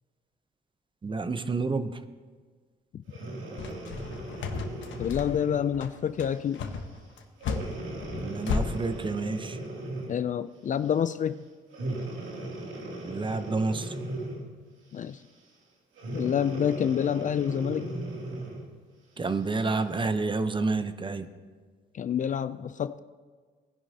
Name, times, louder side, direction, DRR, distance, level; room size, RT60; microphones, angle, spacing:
voice 1, 1.0-1.9 8.1-9.6 13.1-13.9 19.2-21.3, right 3 dB, 25° right, 10 dB, 0.7 m, -29 dB
Breathing, 3.1-5.7 6.3-6.6 7.4-10.3 11.7-14.6 16.0-18.7 19.3-19.4, right 1 dB, 75° right, 2.7 m, -38 dB
sound 1, 3.6-8.6, left 5 dB, 70° left, 1.2 m, -33 dB
voice 2, 5.0-6.6 10.1-11.5 14.9-15.2 16.1-18.0 21.9-23.0, left 8 dB, 40° left, 14 dB, 0.4 m, -28 dB
19.5 x 10.5 x 2.8 m, 1.5 s
cardioid pair, 90°, 20 cm